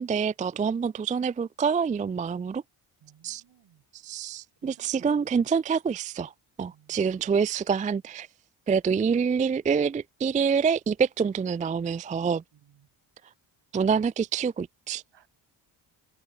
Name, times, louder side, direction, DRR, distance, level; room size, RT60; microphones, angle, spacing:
voice 1, 0.0-2.6 3.2-3.4 4.0-6.3 6.6-8.3 8.7-12.4 13.7-15.0, right 6 dB, 20° right, 0.3 m, -26 dB
voice 2, 3.0-3.8 4.6-5.4 6.6-7.3 12.5-12.9 15.1-15.3, right 9 dB, 65° right, 2.8 m, -59 dB
cardioid pair, 65°, 46 cm